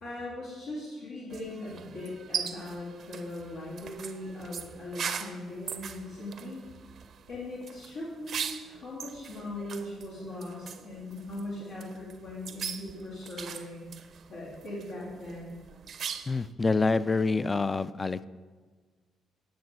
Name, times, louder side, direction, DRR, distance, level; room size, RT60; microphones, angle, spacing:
voice 1, 0.0-6.6 7.3-13.9 14.3-15.6, left 1 dB, 85° left, -7 dB, 2.1 m, -39 dB
sound 1, 1.3-16.5, right 7 dB, 60° right, 0.5 m, -41 dB
voice 2, 16.3-18.3, left 3 dB, 25° left, 17 dB, 0.3 m, -27 dB
10.5 x 5.6 x 4.6 m, 1.5 s
cardioid pair, 90°, 0 cm